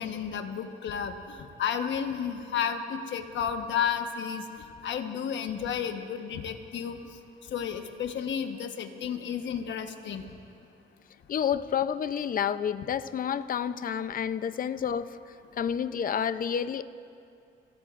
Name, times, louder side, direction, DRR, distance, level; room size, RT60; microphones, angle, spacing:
voice 1, 0.0-4.4 4.8-7.0 7.5-10.2, left 7 dB, 65° left, 6 dB, 1.2 m, -32 dB
voice 2, 11.3-15.2 15.6-16.8, left 8 dB, 45° left, 13 dB, 0.6 m, -29 dB
26.5 x 17.0 x 2.5 m, 2.5 s
cardioid pair, 90°, 20 cm